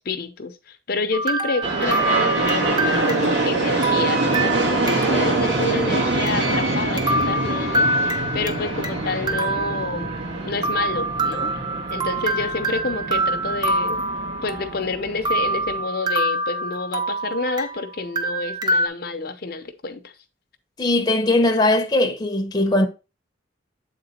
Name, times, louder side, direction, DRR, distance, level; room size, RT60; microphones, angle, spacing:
voice 1, 0.0-10.1 10.5-11.5 11.9-14.0 14.4-20.1, left 3 dB, 55° left, 0.7 m, -29 dB
sound 1, 1.1-5.3 5.6-5.7 6.3-6.4 7.0-8.9 9.3-10.3 10.6-14.8 15.3-17.8 18.2-18.9, right 2 dB, 25° right, 0.7 m, -25 dB
sound 2, 1.6-15.8, right 2 dB, 70° right, 2.3 m, -25 dB
voice 2, 20.8-22.9, left 2 dB, 20° left, 0.8 m, -19 dB
8.1 x 3.9 x 4.3 m
head